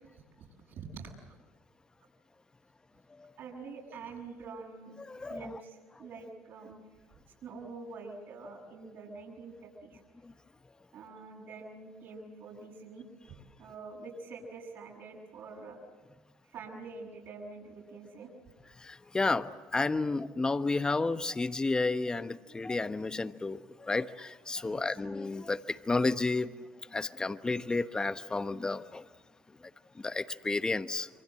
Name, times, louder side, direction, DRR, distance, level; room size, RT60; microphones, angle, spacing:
voice 1, 0.8-1.3 3.4-5.0 5.3-6.8 7.4-10.0 10.9-15.8 16.5-18.3 24.6-24.8, right 4 dB, 65° right, -4 dB, 7.2 m, -46 dB
voice 2, 5.0-5.5 10.2-10.3 18.8-26.6 26.9-29.1 29.9-31.1, left 3 dB, 20° left, 11 dB, 1.1 m, -32 dB
27.0 x 24.5 x 7.8 m, 1.3 s
supercardioid pair, 80°, 4 cm